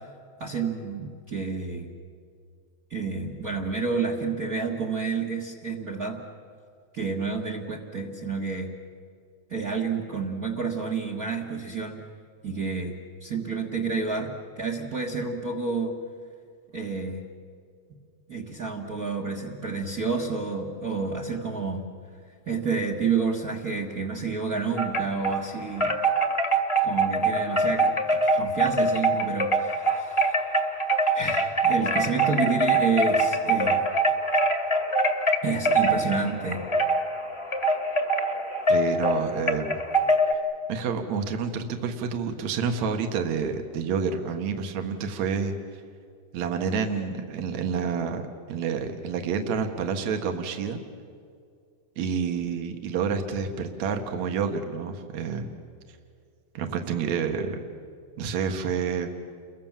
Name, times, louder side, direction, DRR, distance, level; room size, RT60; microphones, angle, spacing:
voice 1, 0.4-1.9 2.9-6.2 6.9-8.7 9.5-12.0 12.4-15.9 16.7-17.2 18.3-21.9 22.5-25.9 26.8-30.3 31.1-33.8 35.4-36.7, right 4 dB, 35° right, 3 dB, 1.6 m, -29 dB
Wind chime, 24.8-25.4 25.8-40.3, right 2 dB, 10° left, 1.5 m, -24 dB
voice 2, 38.7-39.8 40.7-45.5 46.3-48.2 48.5-50.8 52.0-55.5 56.5-57.6 58.2-59.1, right 6 dB, 65° right, 5 dB, 2.9 m, -28 dB
29.5 x 23.0 x 7.4 m, 2.2 s
omnidirectional pair, 3.5 m